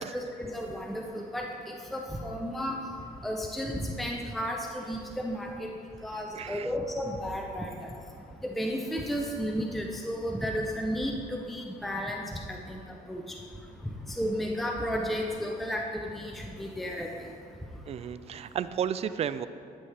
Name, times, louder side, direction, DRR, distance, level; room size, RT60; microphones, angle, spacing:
voice 1, 0.1-2.8 3.2-5.7 6.0-7.9 8.4-12.8 13.1-13.2 14.2-17.1, equal, ahead, 1 dB, 0.6 m, -33 dB
voice 2, 6.4-6.7 17.9-19.5, right 8 dB, 40° right, 13 dB, 0.4 m, -33 dB
11.0 x 7.3 x 3.3 m, 2.4 s
cardioid pair, 110°, 17 cm